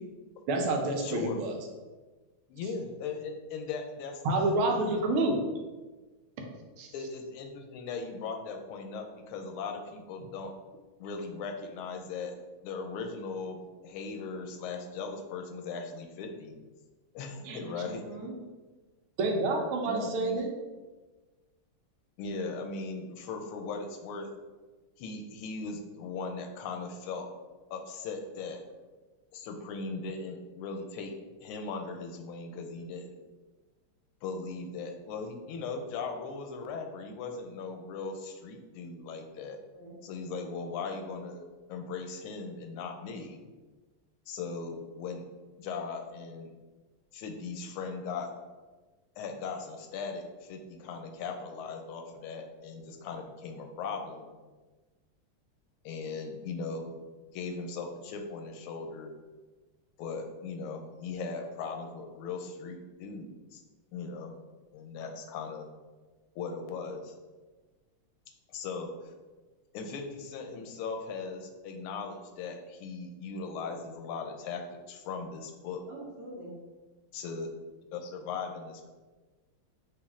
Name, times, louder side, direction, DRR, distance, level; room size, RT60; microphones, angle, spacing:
voice 1, 0.5-1.5 4.2-5.5 6.8-6.9 17.4-17.6 19.2-20.5, right 2 dB, 80° right, 2 dB, 1.6 m, -28 dB
voice 2, 1.0-1.4 2.5-4.5 4.9-5.3 6.9-10.5 11.0-12.4 12.6-16.5 17.1-18.0 19.8-20.4 22.2-24.3 25.0-27.3 27.7-28.6 29.3-31.1 31.4-33.2 34.2-39.6 40.0-41.4 41.7-43.4 44.3-45.2 45.6-46.5 47.1-48.3 49.2-54.3 55.8-56.9 57.3-59.1 60.0-63.6 63.9-64.3 64.7-65.7 66.3-67.1 68.5-69.1 69.7-75.8 77.1-77.5 77.9-78.9, left 4 dB, 85° left, 4 dB, 1.5 m, -38 dB
voice 3, 17.3-18.3 39.7-40.0 75.9-76.6, right 2 dB, 60° right, -4 dB, 1.4 m, -45 dB
5.1 x 2.6 x 3.6 m, 1.3 s
omnidirectional pair, 2.3 m